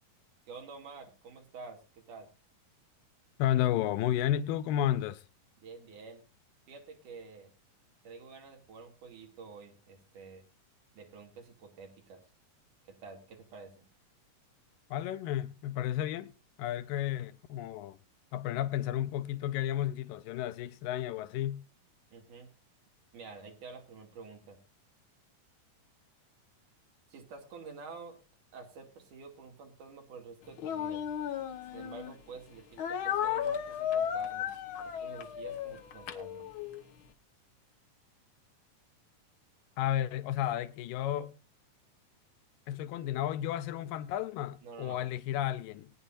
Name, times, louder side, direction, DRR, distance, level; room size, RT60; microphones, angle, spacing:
voice 1, 0.5-2.3 5.6-6.2 6.7-7.5 8.0-10.4 10.9-12.2 12.9-13.9 22.1-22.5 23.1-24.6 27.1-28.2 28.5-31.0 31.7-34.5 35.0-36.4 44.6-45.0, right 4 dB, 70° right, 4.0 m, -49 dB
voice 2, 3.4-5.2 14.9-16.3 16.6-18.0 18.3-21.7 39.8-41.4 42.7-45.9, left 12 dB, 85° left, 2.3 m, -32 dB
Speech, 30.6-32.1 32.8-36.8, left 9 dB, 70° left, 1.2 m, -34 dB
19.5 x 9.9 x 2.6 m
omnidirectional pair, 3.8 m